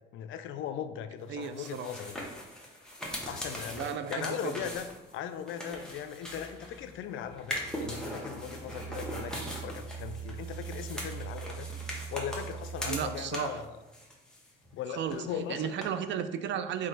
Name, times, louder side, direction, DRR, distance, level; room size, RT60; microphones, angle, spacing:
voice 1, 0.1-2.3 3.2-4.9 5.1-11.7 12.1-13.7 14.7-15.7, left 9 dB, 80° left, 10 dB, 0.4 m, -38 dB
voice 2, 1.3-1.9 3.7-4.6 12.9-13.6 14.9-16.9, right 8 dB, 70° right, 10 dB, 0.4 m, -34 dB
sound 1, 1.4-6.9 7.4-13.6 13.9-14.8 15.1-15.2 15.8-15.9, equal, 5° left, 1.0 m, -40 dB
sound 2, 6.0-13.7, right 7 dB, 50° left, 1.3 m, -43 dB
3.8 x 3.1 x 3.9 m, 1.0 s
cardioid pair, 90°, 20 cm